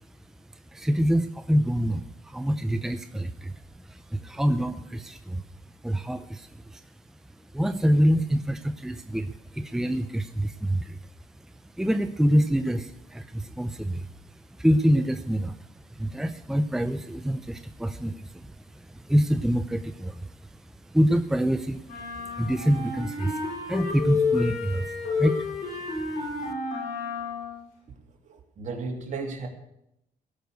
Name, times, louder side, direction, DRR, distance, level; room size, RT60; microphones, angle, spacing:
voice 1, 0.7-3.5 3.8-5.4 5.8-6.8 7.5-11.0 11.8-15.6 15.9-20.3 20.9-25.5 25.9-26.0, equal, 5° right, 9 dB, 0.7 m, -26 dB
sound 1, 21.9-27.6, left 4 dB, 85° left, 7.0 m, -30 dB
voice 2, 28.2-29.5, right 4 dB, 55° right, 2 dB, 3.0 m, -34 dB
17.0 x 6.7 x 8.0 m, 0.82 s
cardioid pair, 95°, 15 cm